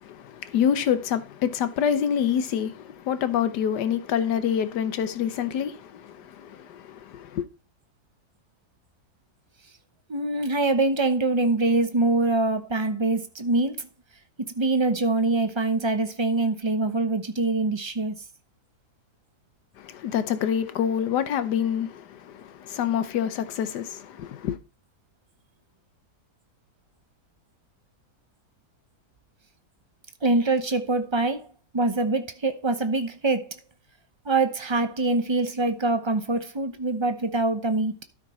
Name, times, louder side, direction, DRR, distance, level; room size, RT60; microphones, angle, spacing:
voice 1, 0.0-7.4 19.8-24.6, left 8 dB, 90° left, 1.5 m, -27 dB
voice 2, 10.1-13.8 14.5-18.1 30.2-31.4 31.7-33.5 34.3-37.9, right 2 dB, 25° right, 0.6 m, -24 dB
12.5 x 5.9 x 4.2 m
omnidirectional pair, 1.7 m